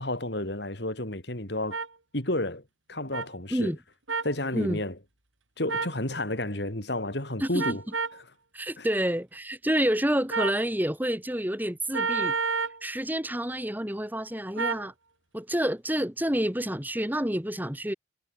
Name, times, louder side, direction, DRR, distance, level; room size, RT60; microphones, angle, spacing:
voice 1, 0.0-1.8 2.1-2.6 2.9-3.7 4.2-5.0 5.6-7.8 8.8-8.9, left 1 dB, 55° left, 3.8 m, -31 dB
sound 1, 1.7-1.9 3.1-3.3 4.1-4.3 5.7-6.0 7.6-8.2 10.3-10.6 11.9-12.8 14.6-14.9, right 4 dB, 80° right, 6.4 m, -29 dB
voice 2, 7.4-7.8 8.5-14.9 15.3-17.9, equal, 10° right, 3.1 m, -28 dB
head